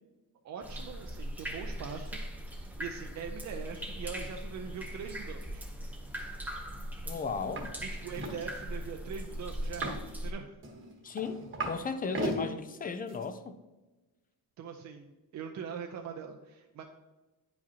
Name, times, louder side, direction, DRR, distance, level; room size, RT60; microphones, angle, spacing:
voice 1, 0.4-5.6 7.8-10.5 14.6-16.8, right 6 dB, 45° right, 3 dB, 0.5 m, -42 dB
sound 1, 0.6-10.3, equal, 5° right, 0.7 m, -40 dB
voice 2, 7.1-7.8 11.0-13.6, left 5 dB, 25° left, 9 dB, 0.3 m, -36 dB
sound 2, 7.5-7.7 7.9-8.4 9.6-10.1 10.6-11.8 12.1-12.4 13.1-13.2, right 2 dB, 30° right, 1.1 m, -35 dB
9.2 x 5.0 x 2.8 m, 1.1 s
cardioid pair, 150°, 39 cm